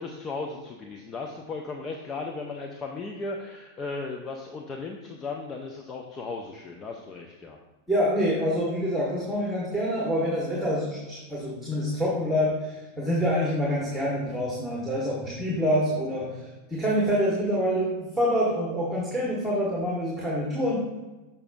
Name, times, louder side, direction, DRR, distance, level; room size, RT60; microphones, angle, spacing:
voice 1, 0.0-7.6, left 3 dB, 25° left, 2 dB, 0.5 m, -36 dB
voice 2, 7.9-16.4 16.7-20.8, equal, 5° right, -5 dB, 1.4 m, -26 dB
6.7 x 5.6 x 2.5 m, 1.1 s
figure-of-eight pair, 90°, 0 cm